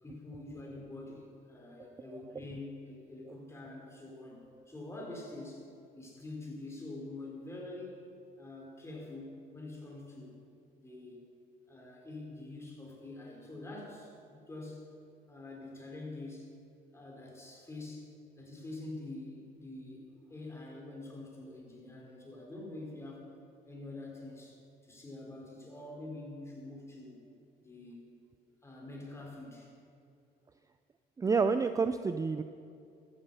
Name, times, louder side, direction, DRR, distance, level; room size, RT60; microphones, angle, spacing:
voice 1, 0.0-5.6 5.9-8.0 8.4-10.3 10.7-11.2 11.7-14.9 15.3-16.5 16.9-18.1 18.4-23.2 23.6-27.2 27.6-28.0 28.6-29.7, left 2 dB, 15° left, -1 dB, 4.5 m, -46 dB
voice 2, 31.2-32.4, right 4 dB, 20° right, 10 dB, 0.5 m, -29 dB
15.0 x 13.5 x 5.6 m, 2.5 s
cardioid pair, 110°, 17 cm